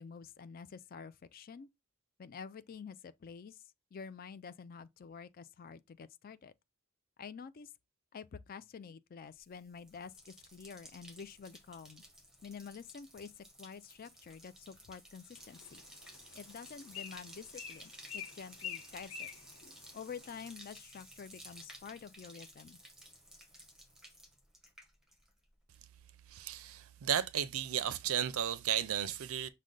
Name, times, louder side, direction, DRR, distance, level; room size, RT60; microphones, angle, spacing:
voice 1, 0.0-1.7 2.2-3.6 3.9-6.5 7.2-7.7 8.1-12.0 12.4-15.8 16.3-19.3 19.9-22.8, left 6 dB, 40° left, 0.3 m, -48 dB
Bathtub (filling or washing), 9.4-25.5 25.7-26.3, equal, ahead, 0.9 m, -55 dB
Bird, 15.4-20.5, left 8 dB, 75° left, 1.2 m, -48 dB
voice 2, 26.3-29.5, right 9 dB, 70° right, 0.4 m, -34 dB
6.2 x 2.2 x 3.8 m
head